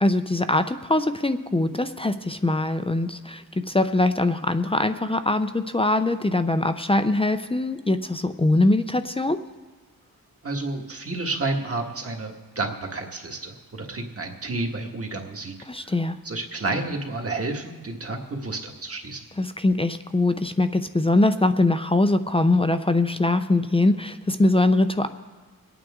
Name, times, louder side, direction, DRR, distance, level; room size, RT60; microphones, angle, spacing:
voice 1, 0.0-9.4 15.7-16.2 19.4-25.1, left 2 dB, 15° left, 9 dB, 0.5 m, -22 dB
voice 2, 10.4-15.5 15.8-15.9 16.2-19.3, right 2 dB, 40° right, 2 dB, 1.7 m, -30 dB
23.5 x 9.0 x 3.7 m, 1.3 s
wide cardioid pair, 105°, 35 cm